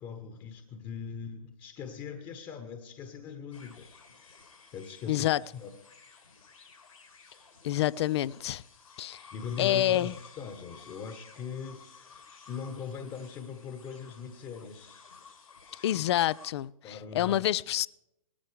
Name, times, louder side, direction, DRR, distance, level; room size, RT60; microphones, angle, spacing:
voice 1, 0.0-4.4 4.7-5.3 5.5-5.7 9.3-15.0 16.8-17.5, left 6 dB, 25° left, 1.2 m, -41 dB
sound 1, 3.5-16.5, left 5 dB, 80° left, 6.9 m, -54 dB
voice 2, 5.1-5.4 7.6-8.6 9.0-9.2 9.6-10.1 15.8-17.9, left 13 dB, 50° left, 0.4 m, -27 dB
19.5 x 13.5 x 3.4 m
figure-of-eight pair, 110°, 18 cm